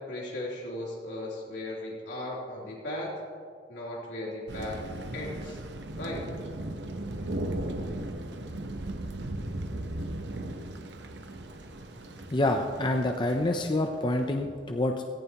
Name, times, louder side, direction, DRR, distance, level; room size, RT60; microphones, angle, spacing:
voice 1, 0.1-3.1 3.7-4.8 5.1-5.6 6.0-6.3, left 1 dB, 80° left, -5 dB, 3.4 m, -36 dB
Thunder, 4.5-14.2, right 1 dB, 70° right, 1.0 m, -37 dB
voice 2, 12.3-15.0, left 1 dB, 25° left, 4 dB, 0.6 m, -27 dB
17.0 x 15.0 x 3.0 m, 2.2 s
head